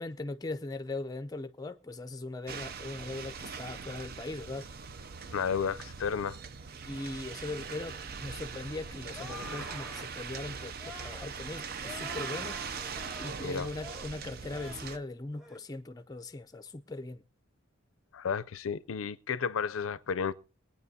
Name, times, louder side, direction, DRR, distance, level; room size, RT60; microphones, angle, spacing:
voice 1, 0.0-4.7 6.9-7.9 8.2-12.6 13.2-17.2, left 2 dB, 20° left, 0.5 m, -40 dB
sound 1, 2.5-15.0, right 5 dB, 45° right, 0.5 m, -41 dB
voice 2, 5.3-6.4 13.4-13.7 18.1-20.3, left 6 dB, 85° left, 0.5 m, -32 dB
sound 2, 9.1-10.1 10.8-11.3 11.8-13.4 13.7-14.1 14.5-14.9 15.3-15.6, left 3 dB, 5° right, 1.1 m, -47 dB
22.5 x 9.2 x 2.7 m
head